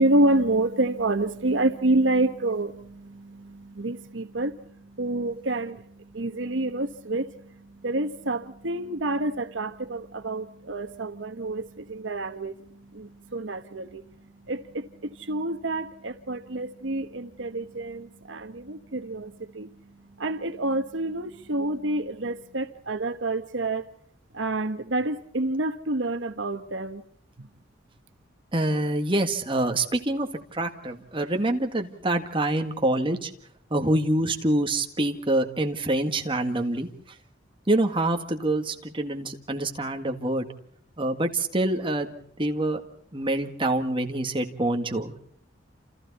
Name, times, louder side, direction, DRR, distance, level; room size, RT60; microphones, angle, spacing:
voice 1, 0.0-23.9 24.3-27.0 27.4-27.5, right 2 dB, 75° right, 1.2 m, -28 dB
voice 2, 28.5-33.3 33.7-36.9 37.7-40.5 41.0-42.8 43.1-45.1, right 1 dB, 25° right, 1.9 m, -26 dB
28.5 x 28.5 x 4.2 m
head